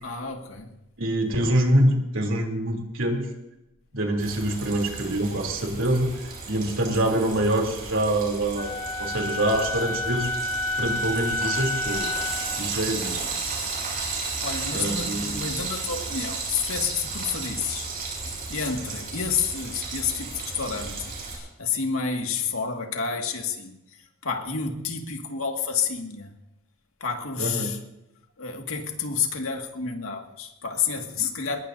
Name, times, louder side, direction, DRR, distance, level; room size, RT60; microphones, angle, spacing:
voice 1, 0.0-0.8 14.1-17.9 18.3-26.4 27.0-27.8 28.4-31.6, left 6 dB, 75° left, 2.1 m, -30 dB
voice 2, 1.0-3.3 3.9-6.1 6.5-8.7 9.0-10.3 10.8-12.1 12.6-13.3 14.7-15.4 27.4-27.7, right 1 dB, 60° right, 3.3 m, -25 dB
Frying (food), 4.2-21.3, right 4 dB, 40° right, 6.5 m, -34 dB
Wind instrument woodwind instrument, 8.6-12.6, left 2 dB, 25° left, 4.2 m, -29 dB
22.5 x 21.0 x 2.7 m
head